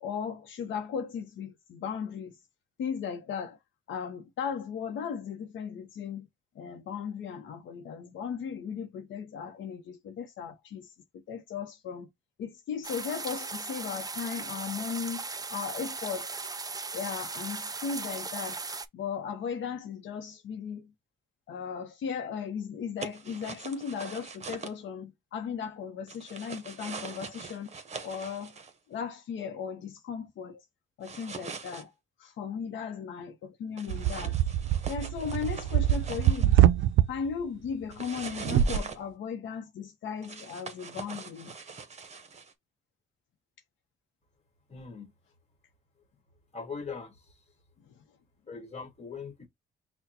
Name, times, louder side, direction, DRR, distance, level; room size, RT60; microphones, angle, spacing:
voice 1, 0.0-2.3 2.8-3.6 3.9-6.3 6.6-10.9 11.3-12.1 12.4-15.2 15.5-16.5 16.9-18.6 18.9-20.9 21.5-27.7 28.0-28.5 28.9-30.6 31.0-31.9 32.2-34.4 34.9-36.6 37.1-41.5, left 6 dB, 70° left, 0.8 m, -36 dB
sound 1, 12.8-18.9, right 4 dB, 20° right, 0.5 m, -38 dB
sound 2, 23.0-24.7 26.1-28.7 31.0-31.8 33.8-36.6 37.9-39.0 40.2-42.5, right 5 dB, 35° right, 0.9 m, -43 dB
sound 3, 33.9-37.1 38.4-38.8, right 12 dB, 75° right, 0.4 m, -24 dB
voice 2, 44.7-45.1 46.5-47.3 48.5-49.5, left 5 dB, 35° left, 1.4 m, -41 dB
5.8 x 2.2 x 2.8 m
cardioid pair, 90°, 20 cm